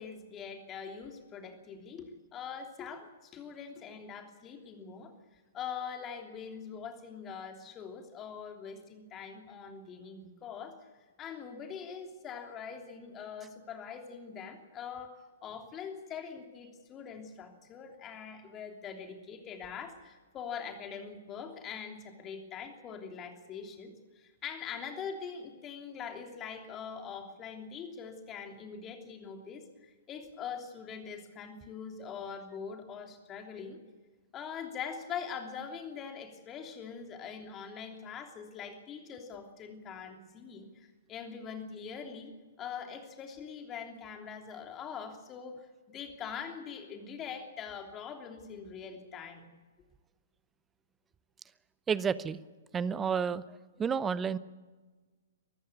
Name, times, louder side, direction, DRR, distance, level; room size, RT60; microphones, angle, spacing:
voice 1, 0.0-10.8 11.2-33.8 34.3-49.5, left 6 dB, 25° left, 4 dB, 3.2 m, -43 dB
voice 2, 51.9-52.4 52.7-54.4, right 6 dB, 15° right, 18 dB, 0.7 m, -31 dB
23.5 x 14.5 x 8.4 m, 1.3 s
figure-of-eight pair, 115°, 0 cm